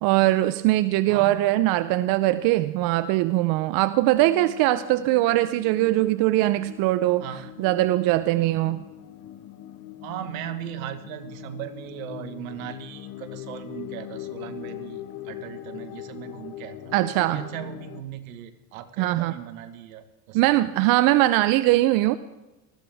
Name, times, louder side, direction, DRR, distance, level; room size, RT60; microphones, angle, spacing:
voice 1, 0.0-7.2 7.6-8.8 16.9-17.4 19.0-19.3 20.3-22.2, right 16 dB, 60° right, 14 dB, 0.6 m, -21 dB
voice 2, 1.1-1.5 7.2-7.5 8.4-8.5 10.0-20.6, right 11 dB, 80° right, 11 dB, 1.4 m, -38 dB
sound 1, 3.7-18.0, left 12 dB, 50° left, 1.3 m, -41 dB
19.5 x 14.0 x 3.5 m, 1.0 s
supercardioid pair, 100°, 41 cm